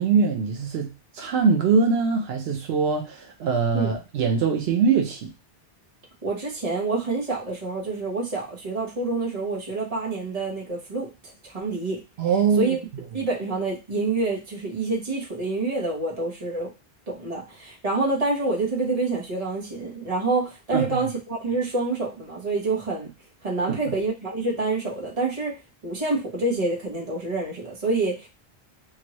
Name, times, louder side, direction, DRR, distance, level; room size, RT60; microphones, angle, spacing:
voice 1, 0.0-5.3 12.2-12.8 20.7-21.0 23.7-23.8, right 5 dB, 80° right, 2 dB, 0.9 m, -23 dB
voice 2, 6.2-11.1 11.4-12.0 12.6-12.8 13.1-16.7 17.1-23.1 23.4-25.5 25.8-28.3, right 3 dB, 40° right, -3 dB, 1.1 m, -27 dB
3.0 x 2.6 x 2.9 m, 0.28 s
omnidirectional pair, 1.0 m